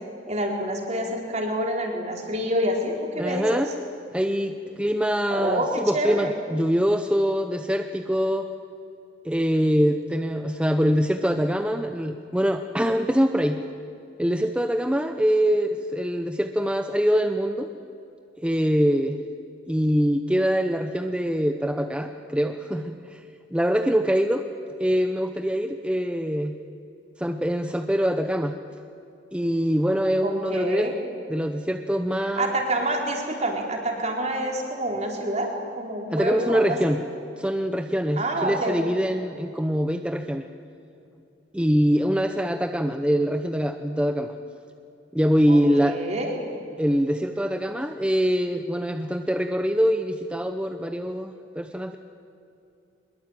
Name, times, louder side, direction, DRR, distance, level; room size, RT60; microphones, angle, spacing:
voice 1, 0.3-3.6 5.3-6.4 30.2-30.9 32.4-35.5 35.8-36.9 38.1-38.8 45.5-46.4, right 1 dB, 40° right, 1 dB, 4.2 m, -27 dB
voice 2, 3.2-3.7 4.1-8.5 9.2-13.6 14.2-17.7 18.4-19.2 19.7-23.2 23.5-24.4 24.8-26.5 27.2-28.5 29.3-30.9 31.3-32.6 36.1-37.0 37.4-40.4 41.5-44.3 45.1-46.0 46.8-52.0, equal, 5° right, 6 dB, 0.8 m, -24 dB
23.5 x 22.0 x 9.0 m, 2.7 s
head